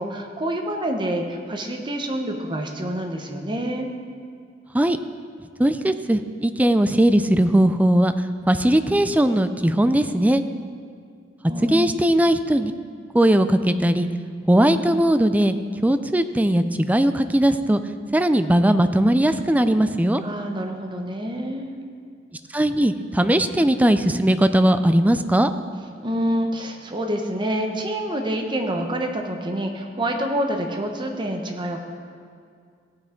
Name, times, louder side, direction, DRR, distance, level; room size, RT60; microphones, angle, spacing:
voice 1, 0.0-3.9 11.5-11.9 20.2-21.7 26.0-31.8, right 1 dB, 25° right, 3 dB, 1.0 m, -27 dB
voice 2, 5.6-8.1 8.5-10.4 11.7-12.7 13.1-14.1 14.5-15.5 15.8-17.8 18.1-20.2 22.5-25.5, right 1 dB, 10° right, 10 dB, 0.4 m, -19 dB
16.5 x 9.2 x 3.8 m, 2.2 s
head